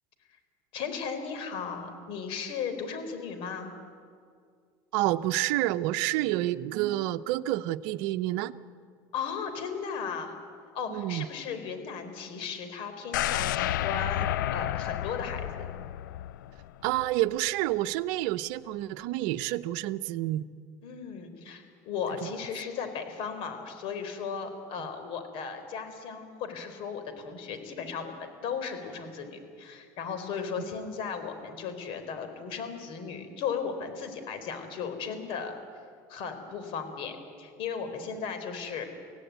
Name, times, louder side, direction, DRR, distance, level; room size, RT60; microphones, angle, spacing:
voice 1, 0.7-3.7 9.1-10.3 10.7-15.6 20.8-35.5 36.1-38.8, left 6 dB, 60° left, 8 dB, 4.2 m, -36 dB
voice 2, 4.9-8.5 10.9-11.3 16.8-20.4 24.8-24.9, right 16 dB, 70° right, 11 dB, 0.8 m, -29 dB
sound 1, 13.1-17.1 17.5-17.6, left 13 dB, 90° left, 0.5 m, -31 dB
25.0 x 17.0 x 9.4 m, 2.2 s
supercardioid pair, 95°, 10 cm